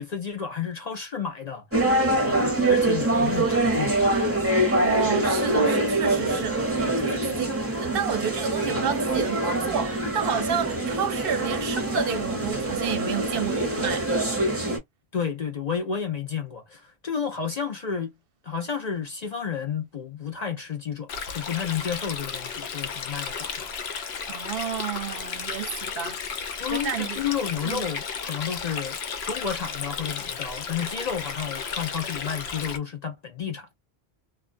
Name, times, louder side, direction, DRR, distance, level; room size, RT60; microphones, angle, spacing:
voice 1, 0.0-2.0 2.3-4.1 15.1-18.1 18.4-23.7 26.6-29.0 29.3-33.7, left 7 dB, 50° left, 0.5 m, -31 dB
sound 1, 1.7-14.8, right 2 dB, 15° right, 0.9 m, -24 dB
voice 2, 4.8-14.1 24.3-27.2 27.6-27.8, right 8 dB, 65° right, 0.7 m, -31 dB
Stream, 21.1-32.8, left 6 dB, 75° left, 0.9 m, -33 dB
2.3 x 2.3 x 2.4 m
omnidirectional pair, 1.1 m